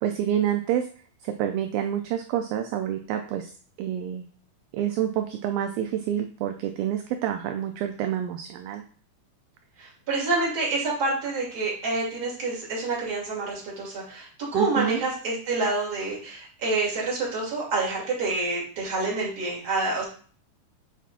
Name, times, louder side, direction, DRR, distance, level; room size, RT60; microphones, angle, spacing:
voice 1, 0.0-0.9 1.2-3.5 3.8-4.2 4.7-8.8 14.5-15.0, right 10 dB, 80° right, 6 dB, 2.2 m, -28 dB
voice 2, 9.8-14.3 14.5-20.0, right 3 dB, 30° right, -5 dB, 2.5 m, -27 dB
6.9 x 5.8 x 2.5 m, 0.43 s
omnidirectional pair, 4.5 m